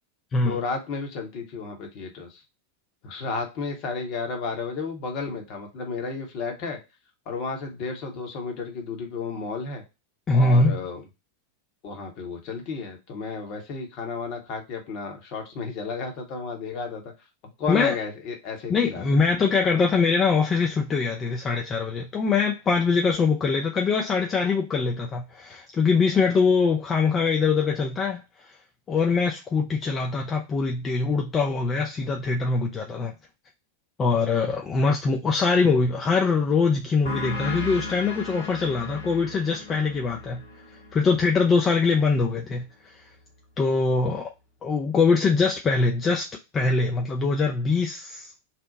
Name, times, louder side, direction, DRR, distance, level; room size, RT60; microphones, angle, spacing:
voice 1, 0.4-2.4 3.0-6.8 7.3-9.8 10.3-11.0 11.8-17.0 17.6-19.2, left 4 dB, 40° left, 0.9 m, -32 dB
voice 2, 10.3-10.8 17.7-17.9 18.7-28.2 28.9-33.1 34.0-40.4 40.9-42.7 43.6-44.3 44.6-46.3 46.5-48.3, left 4 dB, 20° left, 0.4 m, -23 dB
sound 1, 37.0-42.2, left 3 dB, 60° left, 1.3 m, -36 dB
2.8 x 2.1 x 3.8 m
figure-of-eight pair, 90°, 0 cm